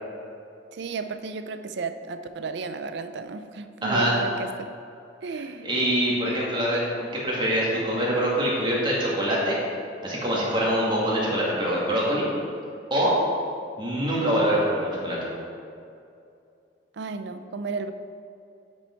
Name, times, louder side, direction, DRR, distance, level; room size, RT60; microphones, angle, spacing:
voice 1, 0.7-4.7 5.2-5.7 6.2-6.4 16.9-17.9, right 4 dB, 70° right, 10 dB, 0.5 m, -33 dB
voice 2, 3.8-4.1 5.6-9.6 10.0-12.3 12.9-13.1 13.8-15.2, equal, 25° right, -5 dB, 2.1 m, -24 dB
8.6 x 6.1 x 4.5 m, 2.5 s
head